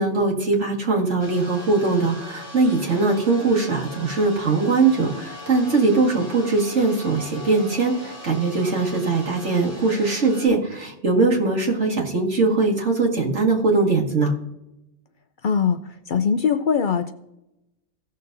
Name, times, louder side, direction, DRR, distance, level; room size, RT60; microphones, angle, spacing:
voice 1, 0.0-14.3, right 3 dB, 80° right, -1 dB, 2.2 m, -21 dB
sound 1, 1.2-10.5, left 1 dB, 15° right, 2.5 m, -40 dB
voice 2, 15.4-17.1, left 6 dB, 55° left, 8 dB, 0.6 m, -22 dB
16.5 x 6.6 x 2.6 m, 0.87 s
omnidirectional pair, 1.2 m